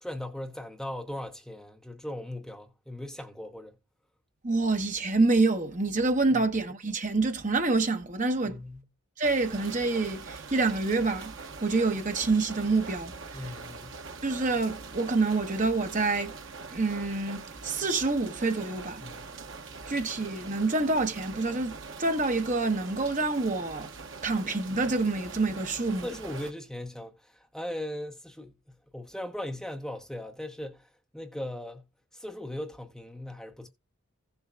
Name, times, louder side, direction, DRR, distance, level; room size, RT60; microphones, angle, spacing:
voice 1, 0.0-3.8 6.3-6.4 8.4-8.9 13.3-14.0 19.0-19.2 26.0-33.7, left 1 dB, ahead, 0.8 m, -39 dB
voice 2, 4.4-8.6 9.2-11.3 11.6-13.5 14.2-16.3 16.7-19.0 19.9-23.9 24.2-26.1, right 3 dB, 35° right, 1.0 m, -27 dB
sound 1, 9.2-26.5, right 4 dB, 60° right, 1.0 m, -43 dB
16.0 x 6.9 x 2.3 m
head